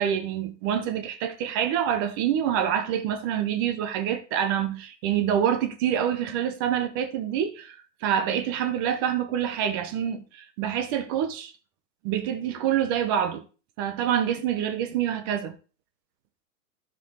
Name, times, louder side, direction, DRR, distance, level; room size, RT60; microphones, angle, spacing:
voice 1, 0.0-7.7 8.0-11.5 12.0-13.4 13.8-15.5, right 9 dB, 15° right, 0.5 m, -26 dB
13.0 x 4.7 x 3.7 m
hypercardioid pair, 125°, 49 cm